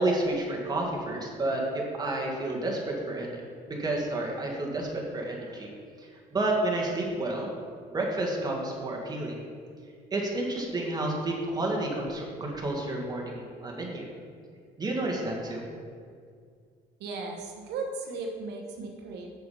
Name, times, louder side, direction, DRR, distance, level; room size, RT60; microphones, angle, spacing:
voice 1, 0.0-3.4 3.7-5.7 6.0-7.5 7.9-9.4 10.1-14.1 14.8-15.6, right 2 dB, 25° right, -1 dB, 1.7 m, -30 dB
voice 2, 17.0-19.3, right 3 dB, 80° right, 1 dB, 1.1 m, -36 dB
6.7 x 6.3 x 5.5 m, 2.1 s
cardioid pair, 110°, 17 cm